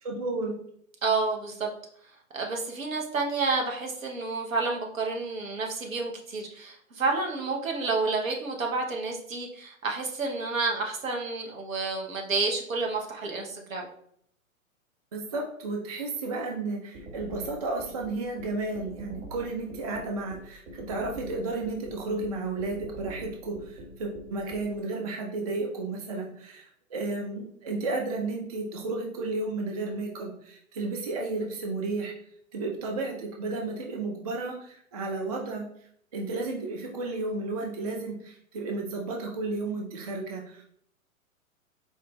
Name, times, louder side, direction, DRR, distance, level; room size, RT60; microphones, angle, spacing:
voice 1, 0.0-0.5 15.1-32.1 32.5-35.7 36.1-40.6, right 3 dB, 30° right, 1 dB, 0.4 m, -33 dB
voice 2, 1.0-1.7 2.3-13.9, right 3 dB, 70° right, 1 dB, 1.0 m, -30 dB
sound 1, 16.9-24.6, right 1 dB, 50° right, 1.4 m, -43 dB
4.2 x 2.4 x 3.1 m, 0.66 s
figure-of-eight pair, 115°, 42 cm